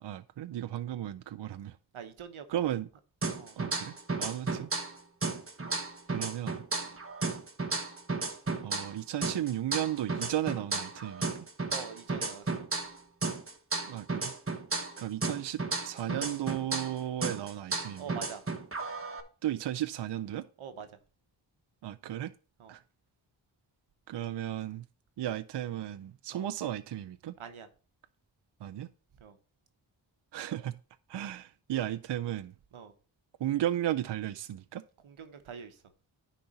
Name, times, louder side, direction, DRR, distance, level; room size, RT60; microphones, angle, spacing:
voice 1, 0.0-1.8 2.5-2.9 3.6-3.9 4.2-4.7 6.1-6.6 8.6-11.3 13.8-14.3 15.0-18.1 19.4-20.5 21.8-22.3 22.7-22.8 24.1-24.8 25.2-27.4 28.6-28.9 30.3-30.8 31.1-32.5 33.4-34.8, right 12 dB, 60° right, 0.5 m, -34 dB
voice 2, 1.9-2.6 3.4-3.6 6.8-7.0 11.7-12.4 14.7-14.8 18.0-18.4 20.6-20.9 22.6-22.7 26.3-26.5 27.4-27.7 29.2-29.3 32.7-32.9 35.0-35.7, right 7 dB, 90° right, 1.1 m, -44 dB
sound 1, 3.2-4.9 5.2-8.9 9.2-13.0 13.2-16.9 17.2-19.2, right 3 dB, 30° right, 1.3 m, -34 dB
10.5 x 4.2 x 4.3 m
cardioid pair, 55°, 47 cm